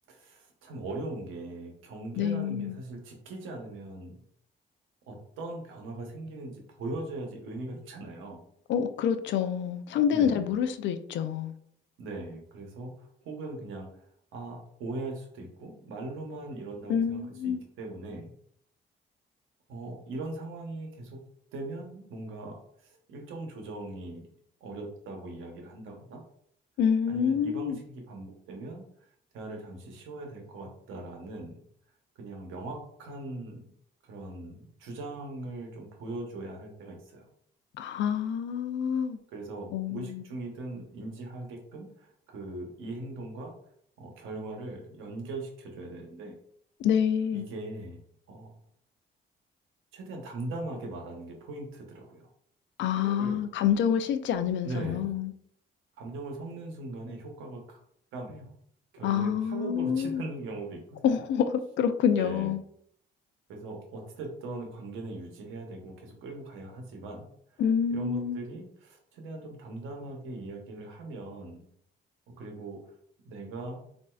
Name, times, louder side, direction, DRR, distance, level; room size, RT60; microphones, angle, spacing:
voice 1, 0.1-4.2 5.1-8.5 10.1-10.5 12.0-18.3 19.7-21.2 21.5-24.3 24.6-26.2 27.1-28.9 29.3-31.6 32.2-33.7 34.0-37.2 39.3-43.5 44.0-46.3 47.3-48.0 48.3-48.5 49.9-52.3 52.9-53.4 54.6-55.1 56.0-57.8 58.1-58.5 58.9-61.0 62.2-62.6 63.5-67.6 67.9-71.7 72.4-72.8 73.2-73.9, right 2 dB, 90° right, 0.9 m, -40 dB
voice 2, 2.2-2.8 8.7-11.5 16.9-17.6 26.8-27.8 37.8-39.2 39.7-40.2 46.8-47.5 52.8-55.3 59.0-60.2 61.0-62.6 67.6-68.4, left 8 dB, 70° left, 0.4 m, -27 dB
4.1 x 2.6 x 2.3 m
cardioid pair, 90°, 20 cm